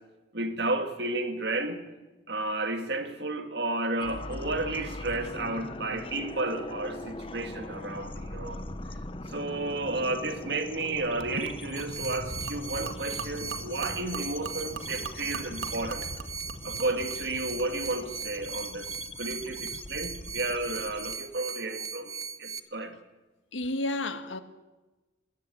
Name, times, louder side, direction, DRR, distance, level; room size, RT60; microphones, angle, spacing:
voice 1, 0.3-1.8 2.3-8.6 9.3-16.1 16.6-23.0, right 2 dB, 60° right, 2.2 m, -32 dB
sound 1, 4.0-21.2, left 2 dB, 30° left, 1.0 m, -41 dB
Gurgling / Liquid, 11.2-18.0, right 4 dB, 85° right, 2.0 m, -42 dB
sound 2, 11.8-22.6, right 6 dB, 20° right, 0.6 m, -39 dB
voice 2, 23.5-24.4, left 2 dB, 85° left, 1.7 m, -31 dB
22.0 x 17.5 x 8.7 m
head